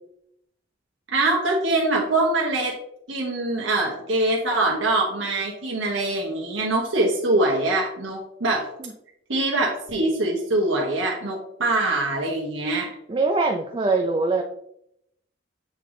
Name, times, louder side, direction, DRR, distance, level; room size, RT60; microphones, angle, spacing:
voice 1, 1.1-2.8 3.1-8.7 9.3-12.9, right 2 dB, 75° right, -2 dB, 1.1 m, -23 dB
voice 2, 13.1-14.4, right 3 dB, 25° right, 3 dB, 0.4 m, -22 dB
7.5 x 3.4 x 3.8 m, 0.76 s
head